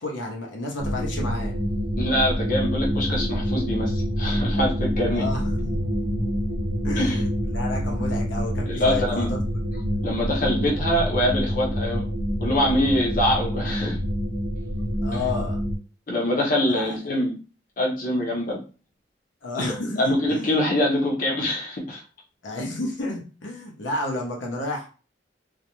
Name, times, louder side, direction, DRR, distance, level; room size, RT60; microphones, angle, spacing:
voice 1, 0.0-1.5 5.1-5.8 6.8-9.4 15.0-15.6 16.7-17.0 19.4-20.6 22.4-24.9, left 2 dB, 90° left, 0 dB, 0.7 m, -31 dB
sound 1, 0.8-15.7, equal, 55° right, 0.7 m, -26 dB
voice 2, 2.0-5.2 7.0-7.2 8.7-9.3 10.0-12.0 12.4-14.0 15.1-15.2 16.1-17.3 17.8-18.6 19.6-19.7 20.0-22.0, left 1 dB, 45° left, -2 dB, 0.6 m, -24 dB
2.4 x 2.1 x 2.9 m, 0.35 s
head